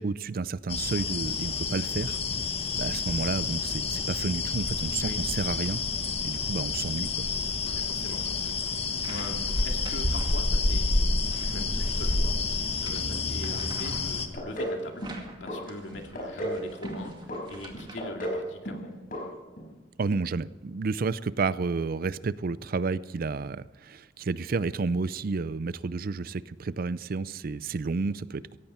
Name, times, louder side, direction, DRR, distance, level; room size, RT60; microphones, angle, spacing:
voice 1, 0.0-2.2 2.8-5.8 6.2-7.3 20.0-28.6, right 4 dB, 50° right, 18 dB, 0.5 m, -31 dB
sound 1, 0.7-14.3, left 4 dB, 35° left, 1.1 m, -29 dB
voice 2, 7.7-15.1 15.4-17.2 17.5-19.0, left 2 dB, 80° left, 3 dB, 2.3 m, -41 dB
sound 2, 8.9-10.9 11.3-18.0, right 1 dB, 25° right, 2.2 m, -40 dB
sound 3, 14.3-14.8 15.0-15.6 15.9-16.6 16.8-17.4 17.7-18.4 18.6-18.9 19.1-19.2 19.6-19.7, equal, 50° left, 5.1 m, -33 dB
17.5 x 14.5 x 4.4 m, 1.2 s
head